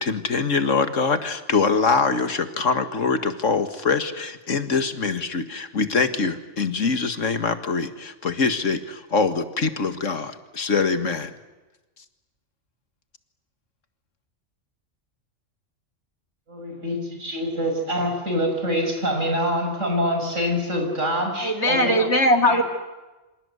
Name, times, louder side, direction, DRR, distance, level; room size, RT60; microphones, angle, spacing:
voice 1, 0.0-11.3, left 4 dB, 90° left, 9 dB, 2.1 m, -24 dB
voice 2, 16.5-22.1 22.5-22.6, equal, 85° right, 3 dB, 6.6 m, -25 dB
voice 3, 21.4-22.6, equal, 65° left, 5 dB, 3.2 m, -19 dB
28.0 x 26.0 x 8.0 m, 1.1 s
omnidirectional pair, 1.3 m